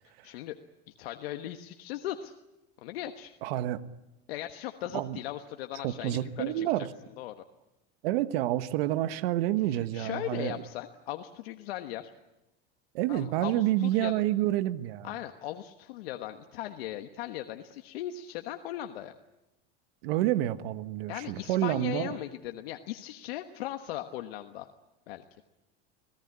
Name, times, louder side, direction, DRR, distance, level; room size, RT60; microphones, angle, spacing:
voice 1, 0.0-0.5 0.9-2.3 2.8-3.3 4.3-6.9 7.2-7.4 9.7-12.1 13.1-14.1 15.0-19.1 21.1-24.7 25.1-25.4, left 13 dB, 85° left, 6 dB, 1.3 m, -38 dB
voice 2, 3.4-3.8 4.9-5.2 5.8-6.9 8.0-10.5 12.9-15.1 20.0-22.2, right 14 dB, 75° right, 12 dB, 1.4 m, -28 dB
26.0 x 18.0 x 9.7 m, 0.98 s
supercardioid pair, 120°, 30 cm